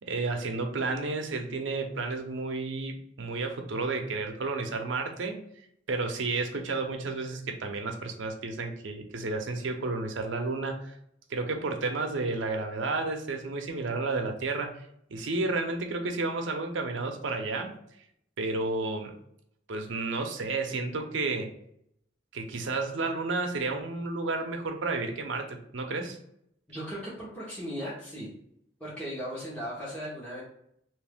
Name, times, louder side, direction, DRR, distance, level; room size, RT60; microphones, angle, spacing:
voice 1, 0.0-5.4 5.9-10.9 11.3-14.8 15.1-17.7 18.4-19.1 19.7-21.5 22.3-26.2, right 3 dB, 85° right, 4 dB, 0.6 m, -31 dB
voice 2, 26.7-28.3 28.8-30.4, equal, 5° left, -8 dB, 1.0 m, -37 dB
3.0 x 2.6 x 3.4 m, 0.73 s
head